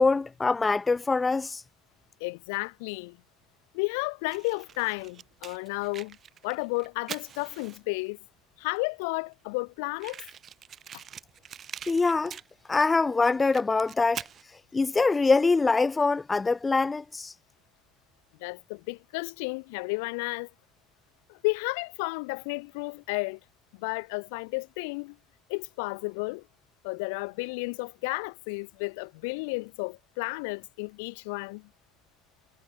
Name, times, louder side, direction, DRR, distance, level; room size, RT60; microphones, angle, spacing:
voice 1, 0.0-1.6 11.9-12.4 12.7-14.3 14.7-17.3, left 3 dB, 20° left, 0.6 m, -24 dB
voice 2, 2.2-3.2 3.7-6.2 6.4-8.2 8.6-10.2 18.4-20.5 21.3-23.4 23.7-25.2 25.5-26.4 26.8-31.7, left 29 dB, 85° left, 4.9 m, -32 dB
Fire, 4.3-8.1 8.8-8.9 9.0-9.1 9.3-9.4 10.0-12.9 13.2-14.4, right 8 dB, 45° right, 6.6 m, -43 dB
supercardioid pair, 90°, 0 cm